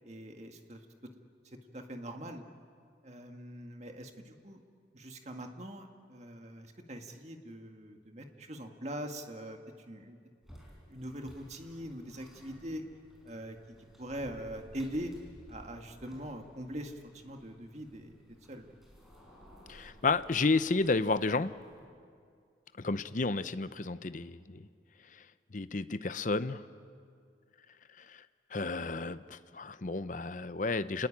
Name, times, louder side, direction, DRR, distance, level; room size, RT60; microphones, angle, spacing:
voice 1, 0.0-1.1 1.5-2.4 3.0-4.6 4.9-9.6 9.9-10.2 10.9-12.8 13.2-13.6 14.0-15.1 15.5-18.1 18.5-18.7 22.9-23.0, equal, 35° right, 4 dB, 1.8 m, -42 dB
Rostock Central Station Front Door Noise, 10.4-21.9, equal, ahead, 5.3 m, -56 dB
voice 2, 19.7-21.5 22.8-24.7 25.5-26.6 28.0-28.2 28.5-31.1, left 3 dB, 45° left, 13 dB, 0.7 m, -31 dB
29.0 x 20.0 x 8.8 m, 2.2 s
head